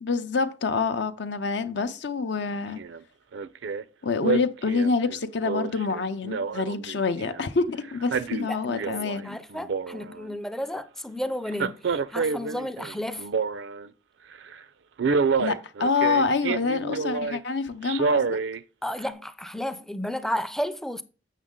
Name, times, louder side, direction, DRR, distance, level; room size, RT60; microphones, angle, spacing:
voice 1, 0.0-2.8 4.0-9.4 15.4-18.4, left 4 dB, 65° left, 0.6 m, -27 dB
Male speech man speaking, 2.8-3.0 3.3-3.8 4.2-7.4 7.9-9.2 9.5-10.3 11.5-13.9 14.3-14.5 15.0-17.4 17.8-18.6 19.1-19.2, right 5 dB, 75° right, 0.4 m, -28 dB
voice 2, 8.3-8.9 9.2-13.3 18.8-21.0, left 1 dB, ahead, 0.4 m, -32 dB
7.4 x 6.2 x 3.7 m
head